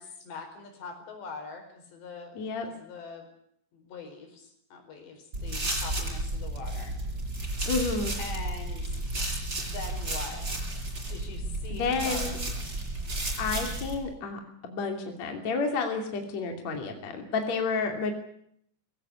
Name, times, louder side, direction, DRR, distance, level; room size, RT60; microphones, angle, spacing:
voice 1, 0.0-2.4 2.6-3.3 3.7-7.0 8.2-9.0 9.6-10.5 11.1-12.4, left 4 dB, 70° left, 5 dB, 6.8 m, -43 dB
voice 2, 2.4-2.7 7.7-8.2 11.8-12.4 13.4-18.1, left 4 dB, 40° left, 4 dB, 3.6 m, -30 dB
sound 1, 5.3-14.0, right 1 dB, 20° right, 6.4 m, -32 dB
22.0 x 17.0 x 9.8 m, 0.68 s
omnidirectional pair, 5.3 m